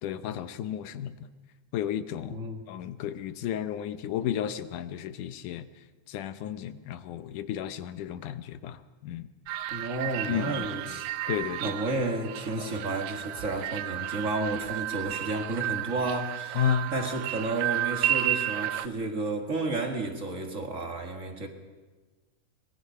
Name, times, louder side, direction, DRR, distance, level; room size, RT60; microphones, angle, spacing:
voice 1, 0.0-1.3 1.7-2.4 2.7-5.7 6.1-9.3 10.3-10.6 11.3-11.8 16.5-16.9, left 10 dB, 75° left, 12 dB, 2.3 m, -32 dB
voice 2, 2.3-2.6 9.7-11.1 11.6-21.5, right 2 dB, 35° right, 4 dB, 1.5 m, -32 dB
sound 1, 9.5-18.9, right 12 dB, 75° right, 2.0 m, -32 dB
25.0 x 20.0 x 5.6 m, 1.3 s
omnidirectional pair, 3.8 m